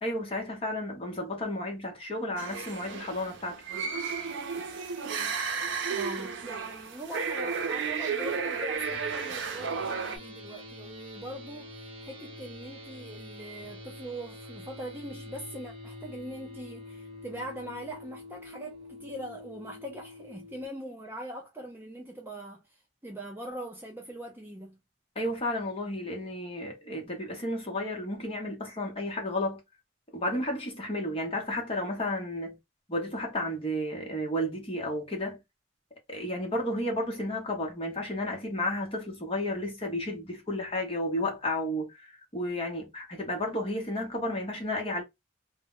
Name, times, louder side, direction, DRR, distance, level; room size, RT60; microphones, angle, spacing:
voice 1, 0.0-3.6 25.2-29.6 30.1-32.6 32.9-35.4 36.1-45.0, left 1 dB, 30° left, 0.8 m, -32 dB
sound 1, 2.4-10.2, right 5 dB, 70° right, 0.5 m, -33 dB
voice 2, 5.9-22.6 23.0-24.8, right 1 dB, 10° right, 0.4 m, -42 dB
sound 2, 8.8-20.6, left 1 dB, 30° right, 0.8 m, -46 dB
2.1 x 2.0 x 3.6 m
head